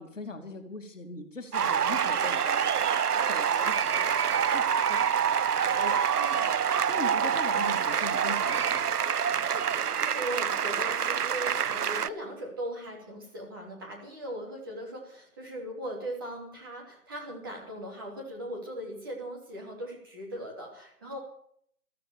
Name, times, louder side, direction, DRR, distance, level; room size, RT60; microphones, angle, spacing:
voice 1, 0.0-9.0, left 3 dB, 55° left, 5 dB, 2.6 m, -41 dB
sound 1, 1.5-12.1, right 8 dB, 85° right, 0.8 m, -26 dB
voice 2, 6.1-6.5 9.8-21.2, right 1 dB, 15° right, -2 dB, 2.8 m, -39 dB
14.5 x 14.0 x 6.9 m, 0.66 s
hypercardioid pair, 180°, 45 cm